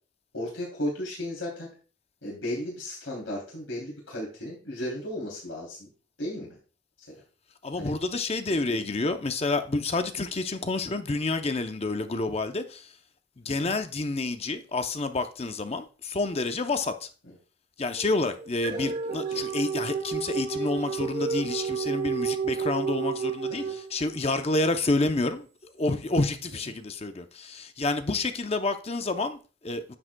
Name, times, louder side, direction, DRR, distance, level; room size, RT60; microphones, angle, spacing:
voice 1, 0.3-1.7 2.2-5.9 6.2-6.6 7.1-7.2 7.8-7.9 8.7-8.8 13.4-13.8 18.7-19.4 23.6-23.7, left 1 dB, 90° left, 3.0 m, -35 dB
voice 2, 7.6-12.9 13.4-17.1 17.8-25.5 25.8-29.9, left 2 dB, 30° left, 0.6 m, -29 dB
sound 1, 18.0-24.3, right 6 dB, 35° right, 0.9 m, -31 dB
9.7 x 7.7 x 2.2 m
head